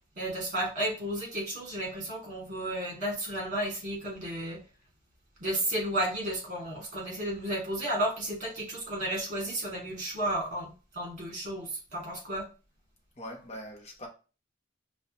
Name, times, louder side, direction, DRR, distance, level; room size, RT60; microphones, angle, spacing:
voice 1, 0.2-4.6 5.4-12.4, right 1 dB, 40° right, 1.9 m, -33 dB
voice 2, 13.2-14.1, equal, 35° left, 0.9 m, -42 dB
5.2 x 2.3 x 2.9 m
head